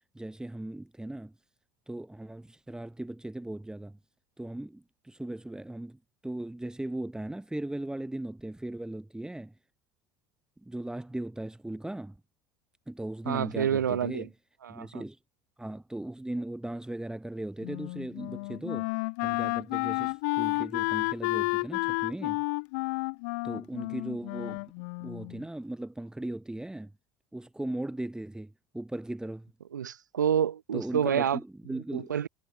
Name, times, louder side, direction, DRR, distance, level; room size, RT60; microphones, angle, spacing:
voice 1, 0.1-1.3 1.9-4.0 4.4-9.5 10.6-12.2 12.9-14.3 14.7-15.2 15.6-18.9 19.2-22.4 23.4-24.7 25.0-26.9 27.3-29.5 30.7-32.2, right 1 dB, 5° right, 5.5 m, -38 dB
voice 2, 13.3-14.3 14.6-15.0 29.7-31.4 31.9-32.3, right 9 dB, 90° right, 1.3 m, -28 dB
Wind instrument woodwind instrument, 17.6-25.4, left 32 dB, 70° left, 1.2 m, -31 dB
hypercardioid pair, 70°, 10 cm